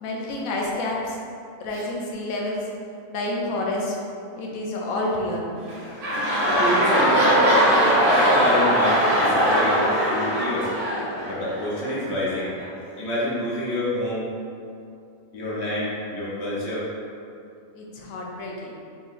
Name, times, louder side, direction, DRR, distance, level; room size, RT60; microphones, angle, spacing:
voice 1, 0.0-1.2 1.6-2.6 3.1-4.0 4.4-5.5 17.7-18.8, left 1 dB, 85° left, -2 dB, 1.1 m, -29 dB
sound 1, 5.6-11.9 12.6-12.7, equal, 65° right, 1.1 m, -20 dB
voice 2, 6.5-7.4 8.1-10.7 11.3-12.5 13.0-14.2 15.3-16.8, equal, 55° left, -8 dB, 1.2 m, -27 dB
3.7 x 3.0 x 2.5 m, 2.5 s
omnidirectional pair, 1.4 m